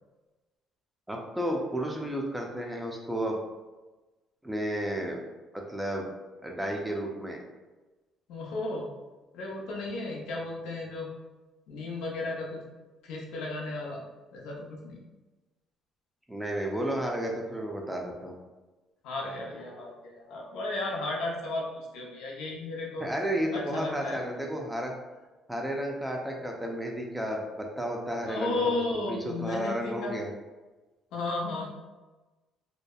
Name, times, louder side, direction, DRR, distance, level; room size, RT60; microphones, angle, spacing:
voice 1, 1.1-3.4 4.4-5.2 5.5-6.1 6.4-7.4 16.3-18.4 23.0-24.9 25.5-28.8 29.1-30.3, equal, 5° right, 0 dB, 0.4 m, -32 dB
voice 2, 8.3-8.9 9.3-11.1 11.7-12.6 13.0-14.0 14.3-15.0 19.0-23.1 23.5-24.2 28.3-30.2 31.1-31.7, left 2 dB, 85° left, -2 dB, 0.5 m, -34 dB
2.7 x 2.0 x 2.2 m, 1.2 s
cardioid pair, 110°, 0 cm